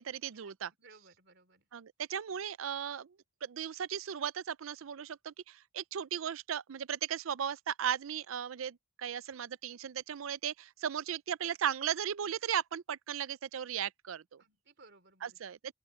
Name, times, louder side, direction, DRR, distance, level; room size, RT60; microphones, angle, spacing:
voice 1, 0.0-0.7 1.7-3.2 3.4-14.4 15.2-15.7, right 8 dB, 80° right, 0.5 m, -36 dB
voice 2, 0.8-1.7 14.4-15.5, right 3 dB, 55° right, 4.1 m, -60 dB
open air
head